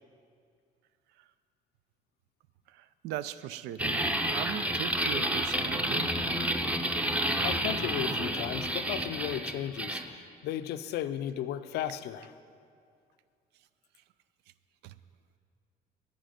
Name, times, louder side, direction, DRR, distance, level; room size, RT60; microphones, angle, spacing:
voice 1, 2.7-6.1 14.8-14.9, right 12 dB, 85° right, 15 dB, 0.4 m, -39 dB
sound 1, 3.8-10.0, right 1 dB, 10° right, 0.6 m, -30 dB
voice 2, 7.4-12.3, left 11 dB, 75° left, 12 dB, 0.5 m, -35 dB
10.0 x 9.3 x 5.1 m, 2.3 s
cardioid pair, 110°, 17 cm